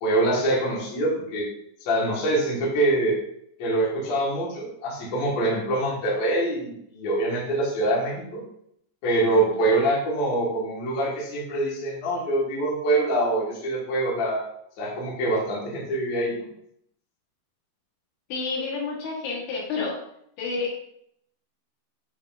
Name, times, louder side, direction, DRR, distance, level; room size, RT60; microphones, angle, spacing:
voice 1, 0.0-1.5 1.8-3.2 3.6-8.4 9.0-14.4 14.8-16.5, right 1 dB, 55° left, -5 dB, 2.1 m, -24 dB
voice 2, 18.3-20.0 20.4-20.8, left 4 dB, 75° left, -3 dB, 3.6 m, -29 dB
8.4 x 4.7 x 2.6 m, 0.72 s
omnidirectional pair, 5.3 m